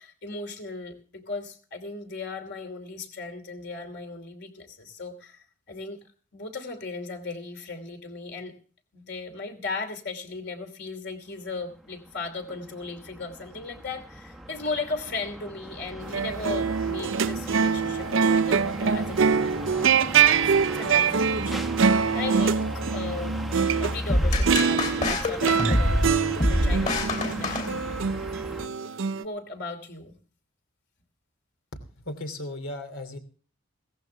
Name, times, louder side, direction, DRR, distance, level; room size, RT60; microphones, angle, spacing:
voice 1, 0.0-6.0 6.3-8.5 8.9-19.8 20.3-23.4 23.8-26.0 26.5-27.7 29.2-30.2, left 3 dB, 50° left, 6 dB, 2.9 m, -37 dB
sound 1, 11.6-28.7, equal, ahead, 0.9 m, -37 dB
sound 2, 16.0-24.0 24.4-29.2, right 6 dB, 65° right, 0.5 m, -24 dB
sound 3, 24.1-28.3, left 1 dB, 35° left, 3.0 m, -25 dB
voice 2, 32.1-33.2, left 1 dB, 75° left, 7 dB, 2.8 m, -35 dB
17.0 x 14.5 x 3.4 m, 0.41 s
head